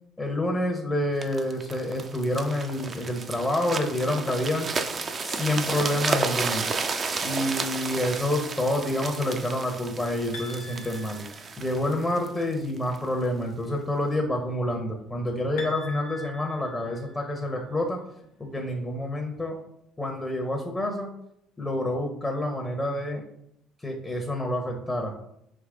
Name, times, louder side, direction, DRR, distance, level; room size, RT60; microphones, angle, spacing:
voice 1, 0.2-4.7 5.2-6.7 7.2-11.2 11.6-18.0 18.4-19.6 20.0-21.1 21.6-23.2 23.8-25.1, left 1 dB, 15° left, 2 dB, 0.7 m, -28 dB
sound 1, 1.2-13.1 13.7-13.8, right 4 dB, 40° right, 0.4 m, -32 dB
sound 2, 10.3-12.0 15.6-17.6, left 2 dB, 75° left, 0.7 m, -43 dB
3.5 x 2.9 x 3.7 m, 0.77 s
supercardioid pair, 70°, 0 cm